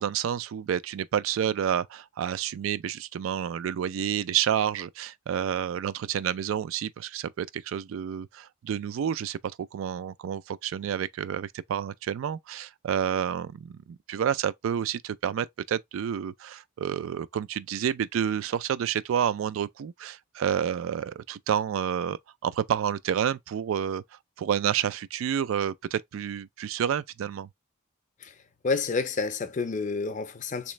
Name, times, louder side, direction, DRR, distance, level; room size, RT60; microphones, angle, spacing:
voice 1, 0.0-24.0 24.4-27.5, right 9 dB, 80° right, 0.3 m, -29 dB
voice 2, 28.6-30.7, left 4 dB, 40° left, 0.6 m, -29 dB
3.3 x 3.0 x 3.1 m
head